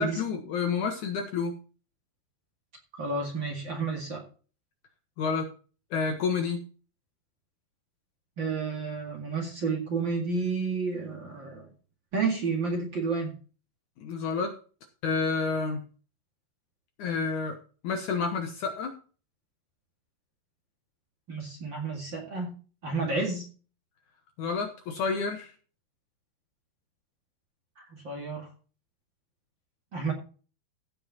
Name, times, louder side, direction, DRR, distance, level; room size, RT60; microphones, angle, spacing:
voice 1, 0.0-1.6 5.2-5.5 5.9-6.7 14.0-14.6 15.0-15.9 17.0-17.6 17.8-19.0 23.1-23.2 24.4-25.5, left 5 dB, 65° left, 5 dB, 2.1 m, -29 dB
voice 2, 3.0-4.2 8.4-11.7 12.1-13.3 21.3-22.5 22.8-23.5 27.8-28.5 29.9-30.1, right 4 dB, 35° right, 0 dB, 2.2 m, -31 dB
16.0 x 5.6 x 4.1 m, 0.37 s
omnidirectional pair, 4.5 m